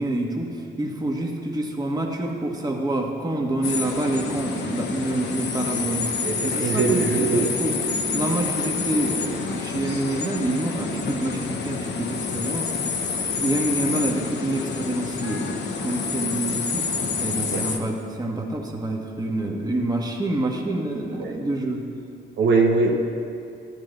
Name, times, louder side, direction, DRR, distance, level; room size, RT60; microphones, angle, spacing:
voice 1, 0.0-7.8 8.1-12.7 13.2-16.9 17.2-21.8, right 1 dB, 20° right, 0 dB, 1.5 m, -27 dB
sound 1, 3.6-17.8, left 5 dB, 60° left, 1.1 m, -28 dB
voice 2, 6.6-7.4 17.5-17.6 21.2-21.3 22.4-22.9, right 4 dB, 65° right, 1 dB, 1.0 m, -20 dB
12.5 x 10.5 x 4.0 m, 2.5 s
cardioid pair, 90°, 20 cm